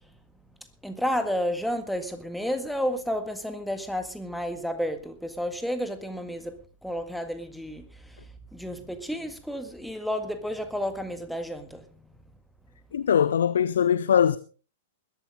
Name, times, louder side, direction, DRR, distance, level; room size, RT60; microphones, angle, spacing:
voice 1, 0.8-8.2 8.5-11.8, equal, ahead, 1.9 m, -31 dB
voice 2, 12.9-14.4, left 8 dB, 60° left, 0.6 m, -21 dB
20.5 x 12.5 x 3.7 m
figure-of-eight pair, 105°, 0 cm